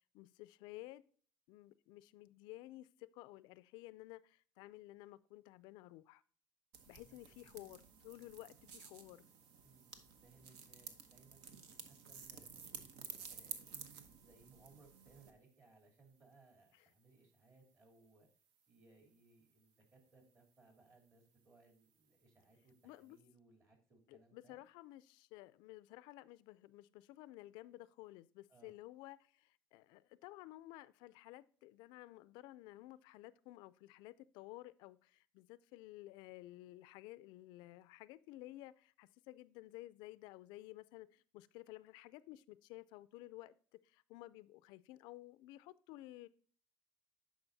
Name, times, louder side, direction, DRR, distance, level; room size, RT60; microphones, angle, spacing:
voice 1, 0.1-1.0 1.5-6.2 6.9-9.2 16.7-16.9 22.8-23.2 24.1-43.6 43.8-46.3, left 17 dB, 75° left, 0.3 m, -54 dB
sound 1, 6.7-15.3, right 6 dB, 75° right, 0.9 m, -53 dB
voice 2, 7.0-7.5 9.6-12.7 13.3-18.3 18.7-24.6 28.5-28.7, right 3 dB, 35° right, 3.2 m, -66 dB
10.0 x 5.1 x 2.7 m
supercardioid pair, 90°, 8 cm